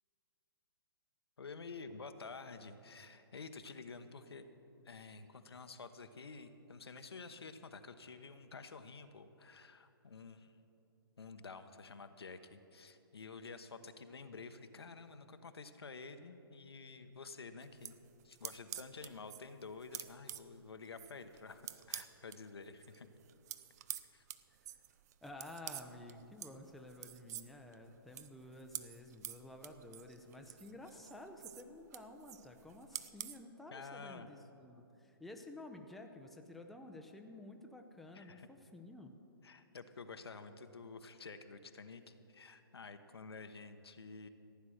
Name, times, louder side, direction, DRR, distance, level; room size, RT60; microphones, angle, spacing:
voice 1, 1.4-4.4 4.8-10.5 11.2-18.0 18.2-23.1 23.9-24.3 33.7-34.3 38.1-38.5 39.4-44.3, left 4 dB, 80° left, 8 dB, 1.0 m, -50 dB
sound 1, 17.6-22.4 22.7-33.4, right 12 dB, 40° right, 0.6 m, -49 dB
voice 2, 25.2-39.2, left 1 dB, ahead, 3 dB, 0.7 m, -52 dB
15.0 x 9.6 x 6.4 m, 2.9 s
hypercardioid pair, 135°, 13 cm